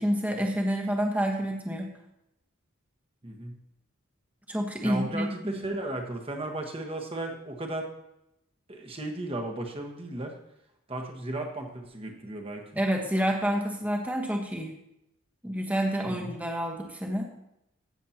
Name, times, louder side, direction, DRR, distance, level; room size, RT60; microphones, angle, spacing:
voice 1, 0.0-1.9 4.5-5.6 12.7-14.7 15.4-17.2, equal, 5° right, 0 dB, 1.2 m, -28 dB
voice 2, 3.2-3.5 4.8-7.9 8.7-10.3 10.9-12.7 16.0-16.3, right 1 dB, 25° right, 3 dB, 1.3 m, -35 dB
15.5 x 7.3 x 2.9 m, 0.82 s
head